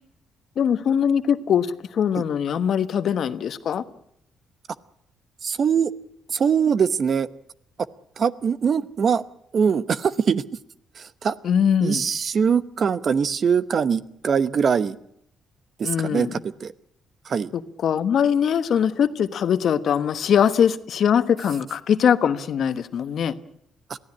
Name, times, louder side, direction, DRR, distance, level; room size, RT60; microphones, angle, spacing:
voice 1, 0.6-3.8 11.4-12.1 15.8-16.4 17.5-23.3, left 8 dB, 65° left, 12 dB, 1.2 m, -22 dB
voice 2, 5.4-5.9 6.3-7.3 8.2-9.2 9.5-10.4 11.0-11.3 11.8-15.0 15.8-16.7 17.2-17.5, right 6 dB, 50° right, 15 dB, 1.0 m, -22 dB
23.5 x 15.5 x 9.9 m, 0.73 s
cardioid pair, 90°, 0 cm